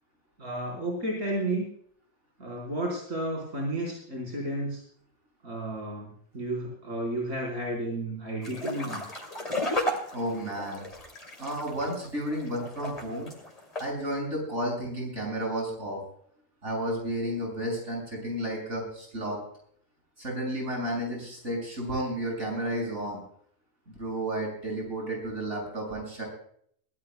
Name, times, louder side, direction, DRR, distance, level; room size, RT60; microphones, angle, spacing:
voice 1, 0.4-1.6 2.4-4.8 5.4-6.1 6.3-9.0, right 1 dB, 90° right, -3 dB, 4.9 m, -32 dB
sound 1, 8.4-13.9, left 1 dB, 30° left, 2.8 m, -34 dB
voice 2, 10.1-10.8 11.4-13.3 13.8-16.0 16.6-19.4 20.2-23.2 23.9-26.3, right 1 dB, 65° right, 0 dB, 7.2 m, -32 dB
22.5 x 17.5 x 2.2 m, 0.63 s
omnidirectional pair, 1.3 m